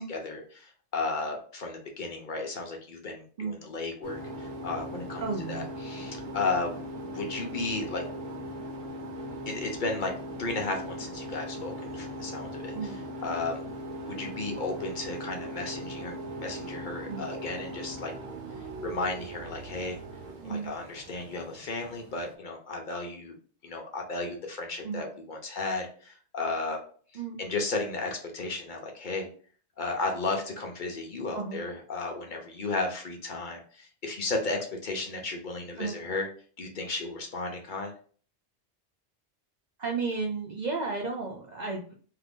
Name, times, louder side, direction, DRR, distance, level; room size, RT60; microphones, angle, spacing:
voice 1, 0.0-5.2 5.5-6.7 7.1-8.0 9.5-10.1 10.4-12.9 13.2-13.6 14.0-18.1 18.8-20.0 20.4-23.4 23.6-26.8 27.4-29.3 29.8-36.3 36.6-37.9, left 3 dB, 50° left, 2 dB, 0.7 m, -34 dB
sound 1, 4.0-22.3, equal, 90° right, 1.0 m, -39 dB
voice 2, 5.2-5.7 12.7-13.0 17.1-17.2 20.4-20.7 24.8-25.1 27.1-27.4 31.3-31.6 35.8-36.0 39.8-42.0, right 4 dB, 55° right, 1 dB, 0.5 m, -33 dB
2.7 x 2.6 x 3.4 m, 0.43 s
omnidirectional pair, 1.1 m